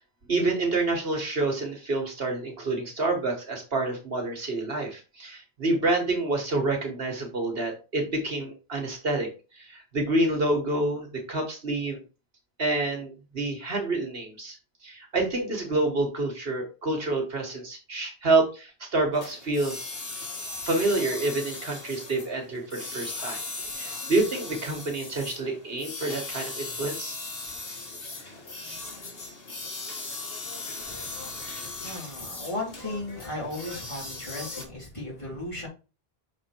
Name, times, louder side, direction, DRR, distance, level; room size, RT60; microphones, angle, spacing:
voice 1, 0.3-9.3 9.5-12.0 12.6-14.6 14.8-19.8 20.6-23.4 23.7-27.2, right 2 dB, 65° right, 2 dB, 1.7 m, -28 dB
sound 1, 19.1-34.6, left 3 dB, 65° left, 1.8 m, -38 dB
voice 2, 30.9-31.3 31.6-35.7, left 1 dB, 30° left, -4 dB, 3.4 m, -36 dB
6.2 x 4.3 x 4.5 m, 0.32 s
omnidirectional pair, 1.1 m